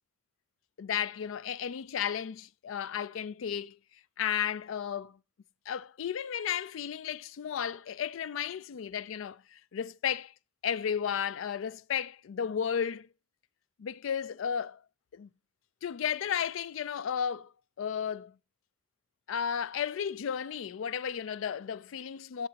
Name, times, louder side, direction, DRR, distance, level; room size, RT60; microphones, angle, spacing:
voice 1, 0.8-3.8 4.2-5.2 5.7-10.3 10.6-13.1 13.8-14.8 15.1-15.3 15.8-17.5 17.8-18.3 19.3-22.5, left 8 dB, 80° left, 0.4 m, -33 dB
12.5 x 6.7 x 2.8 m
head